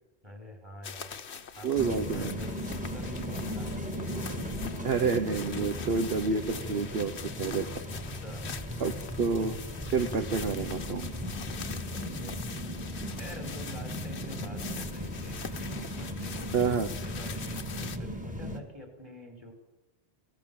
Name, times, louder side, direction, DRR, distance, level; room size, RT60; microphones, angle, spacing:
voice 1, 0.2-1.2 1.6-3.8 7.8-8.5 11.5-12.4 13.2-15.4 16.0-16.7 17.0-19.5, left 1 dB, 25° right, 2 dB, 4.9 m, -46 dB
sound 1, 0.8-18.0, left 6 dB, 75° left, 1.3 m, -43 dB
voice 2, 1.6-2.3 4.8-7.1 7.4-7.7 8.8-9.6 9.9-11.1 16.5-16.9, right 5 dB, 60° right, 8 dB, 1.2 m, -29 dB
sound 2, 1.7-18.6, equal, 5° right, 2.0 m, -37 dB
24.5 x 17.5 x 7.1 m, 1.0 s
omnidirectional pair, 1.2 m